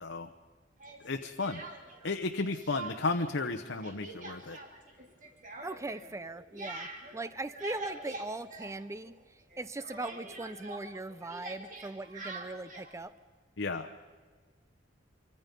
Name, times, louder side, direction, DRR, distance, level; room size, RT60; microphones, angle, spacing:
voice 1, 0.0-0.3 1.0-1.6 2.0-4.6 13.6-13.9, left 3 dB, 75° left, 5 dB, 1.0 m, -33 dB
Speech, 0.8-2.1 2.4-3.3 3.5-9.2 9.5-12.9, right 2 dB, 45° right, 3.1 m, -45 dB
voice 2, 5.6-13.1, right 2 dB, 15° right, 14 dB, 0.6 m, -40 dB
25.5 x 25.0 x 5.4 m, 1.5 s
head